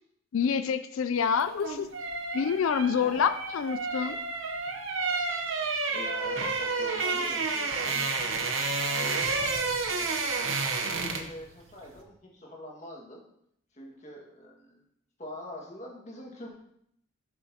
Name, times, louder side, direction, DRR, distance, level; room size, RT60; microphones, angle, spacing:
voice 1, 0.3-1.9 2.3-4.2, left 6 dB, 70° left, 11 dB, 0.4 m, -27 dB
sound 1, 1.4-11.4 11.7-11.9, right 4 dB, 65° right, 1.0 m, -30 dB
voice 2, 5.9-8.2 8.7-13.3 13.7-14.8 15.2-16.5, left 1 dB, 30° left, -2 dB, 1.9 m, -44 dB
11.5 x 7.0 x 2.9 m, 0.73 s
head